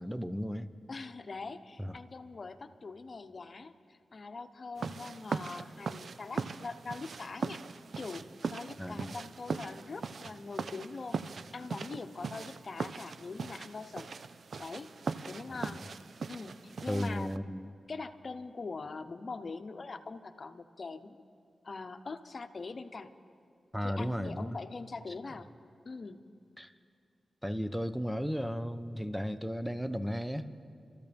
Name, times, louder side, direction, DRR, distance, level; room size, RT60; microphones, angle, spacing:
voice 1, 0.0-0.7 1.8-2.0 8.8-9.1 15.5-15.8 16.9-17.7 23.7-24.6 25.1-25.2 26.6-26.7 27.4-30.5, equal, ahead, 10 dB, 0.9 m, -35 dB
voice 2, 0.9-7.6 8.0-11.2 11.5-14.2 14.6-14.9 15.3-15.9 16.3-17.3 17.9-21.2 21.6-23.1 23.8-25.5 25.8-26.2, left 4 dB, 55° left, 8 dB, 0.9 m, -43 dB
sound 1, 4.8-17.4, right 5 dB, 75° right, 0.5 m, -40 dB
29.5 x 14.0 x 3.5 m, 2.3 s
cardioid pair, 50°, 0 cm